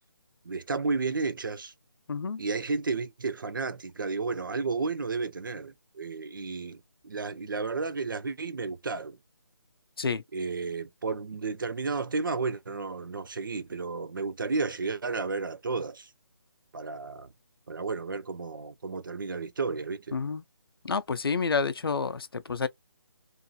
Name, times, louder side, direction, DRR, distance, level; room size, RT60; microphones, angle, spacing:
voice 1, 0.5-1.7 2.4-9.2 10.3-16.1 16.7-17.3 17.7-20.2, right 4 dB, 50° right, 0.5 m, -32 dB
voice 2, 2.1-2.4 10.0-10.2 20.1-20.4 20.8-22.7, left 5 dB, 60° left, 0.5 m, -29 dB
2.7 x 2.6 x 2.3 m
figure-of-eight pair, 170°, 14 cm